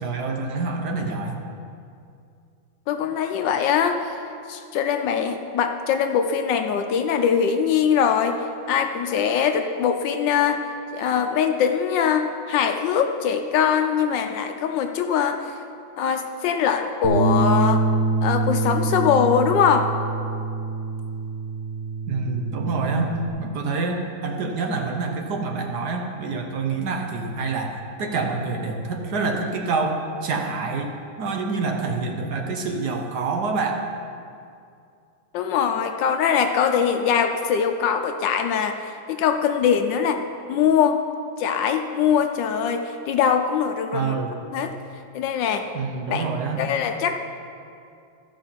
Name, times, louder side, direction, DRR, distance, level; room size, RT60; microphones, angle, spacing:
voice 1, 0.0-1.4 22.1-23.1 23.4-33.8 43.9-44.4 45.7-46.6, right 4 dB, 60° right, 2 dB, 1.3 m, -27 dB
voice 2, 2.9-4.2 4.5-8.4 8.7-10.6 10.9-15.5 16.0-17.8 18.2-19.9 35.3-38.8 39.1-40.2 40.5-41.0 41.4-44.2 44.5-44.7 45.1-45.7 46.1-46.3 46.6-47.1, left 7 dB, 75° left, 6 dB, 1.2 m, -22 dB
Bass guitar, 17.0-23.3, right 2 dB, 75° right, 1.9 m, -25 dB
13.5 x 5.9 x 5.6 m, 2.4 s
omnidirectional pair, 2.1 m